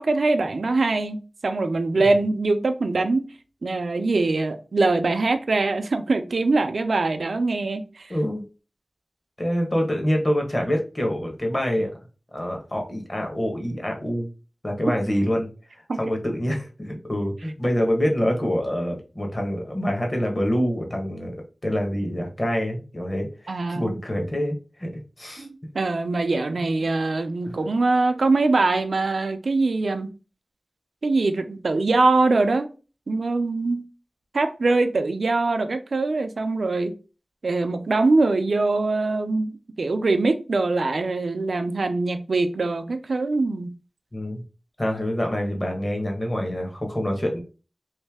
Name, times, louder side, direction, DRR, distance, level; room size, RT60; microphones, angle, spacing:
voice 1, 0.0-3.3 3.6-8.1 15.9-16.0 23.5-24.0 25.4-30.1 31.0-32.7 33.1-33.8 34.3-36.9 37.4-43.7, right 3 dB, 75° right, 0.5 m, -23 dB
voice 2, 8.1-8.4 9.4-11.9 12.3-14.3 14.6-21.3 21.6-25.5 27.4-27.5 44.1-44.4 44.8-47.4, equal, 30° left, 1.1 m, -26 dB
3.2 x 2.7 x 3.4 m
wide cardioid pair, 85°, 0 cm